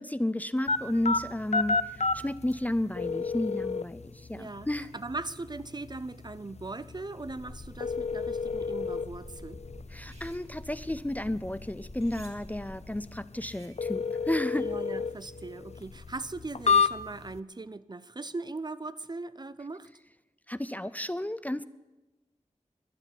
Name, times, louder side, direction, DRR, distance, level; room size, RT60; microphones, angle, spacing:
voice 1, 0.0-4.9 9.9-14.7 20.5-21.6, left 1 dB, 10° left, 15 dB, 0.5 m, -32 dB
sound 1, 0.7-17.4, left 5 dB, 60° left, 0.5 m, -32 dB
voice 2, 4.3-4.7 4.9-9.6 14.5-19.9, right 3 dB, 35° right, 15 dB, 0.5 m, -39 dB
sound 2, 7.3-13.1, left 1 dB, 40° left, 2.8 m, -48 dB
sound 3, 9.9-10.5 12.0-12.4 13.4-13.9, right 2 dB, 60° right, 2.4 m, -56 dB
12.0 x 10.5 x 9.9 m, 1.1 s
wide cardioid pair, 80°, 13 cm